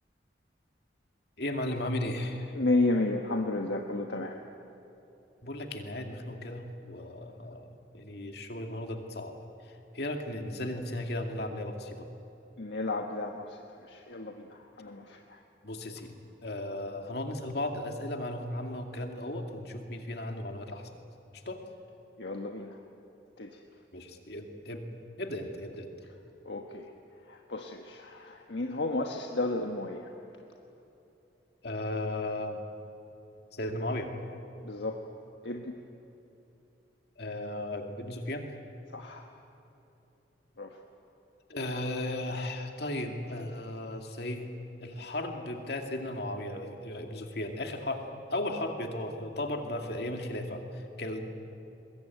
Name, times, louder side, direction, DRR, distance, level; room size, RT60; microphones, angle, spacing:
voice 1, 1.4-2.6 5.4-9.3 9.9-12.1 15.6-16.1 16.4-20.9 21.3-21.6 23.9-24.8 25.2-25.9 31.6-32.6 33.5-34.1 37.2-38.4 41.5-44.5 44.8-48.0 48.3-51.3, left 1 dB, 65° left, 3 dB, 2.4 m, -35 dB
voice 2, 2.5-4.4 12.6-15.4 22.2-22.8 23.4-23.6 26.4-26.9 27.3-30.1 34.6-35.0 35.4-35.7 38.9-39.3 40.6-40.8, left 2 dB, 80° left, 3 dB, 1.4 m, -32 dB
22.5 x 21.0 x 9.3 m, 2.9 s
head